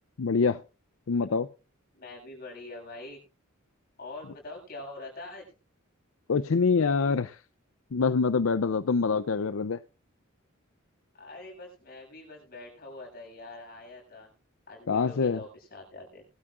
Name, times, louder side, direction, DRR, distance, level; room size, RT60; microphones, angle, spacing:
voice 1, 0.2-0.6 1.1-1.5 6.3-7.4 7.9-9.8 14.9-15.4, left 5 dB, 75° left, 0.5 m, -25 dB
voice 2, 1.9-3.2 4.0-5.5 11.1-14.3 14.7-16.3, left 2 dB, 45° left, 7.7 m, -44 dB
21.5 x 12.5 x 2.5 m
head